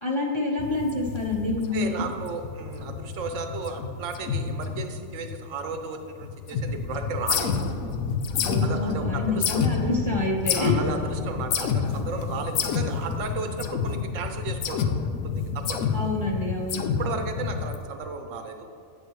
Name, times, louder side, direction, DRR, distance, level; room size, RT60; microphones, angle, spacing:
voice 1, 0.0-2.0 8.4-10.9 15.9-16.8, left 2 dB, 30° left, -2 dB, 0.6 m, -27 dB
sound 1, 0.6-5.8 6.1-17.8, left 6 dB, 90° left, 1.0 m, -29 dB
voice 2, 1.7-7.9 8.6-9.4 10.5-15.9 17.0-18.7, right 4 dB, 70° right, 6 dB, 1.2 m, -34 dB
10.5 x 8.3 x 3.1 m, 2.4 s
omnidirectional pair, 1.4 m